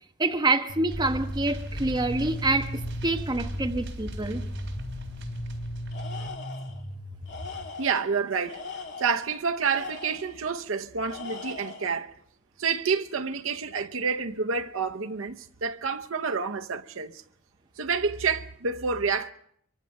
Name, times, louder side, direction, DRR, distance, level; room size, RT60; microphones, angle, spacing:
voice 1, 0.2-4.4, right 2 dB, 20° right, 1.2 m, -26 dB
sound 1, 0.7-7.6, equal, 45° left, 6.2 m, -36 dB
sound 2, 0.9-6.3, equal, 60° right, 3.8 m, -39 dB
Tools, 5.9-6.8 7.3-8.1 8.5-10.4 11.1-12.0, left 4 dB, 60° left, 2.3 m, -40 dB
voice 2, 7.8-8.7 9.0-12.1 12.6-17.2 17.8-19.3, right 5 dB, 80° right, 0.8 m, -28 dB
23.5 x 23.5 x 5.3 m
head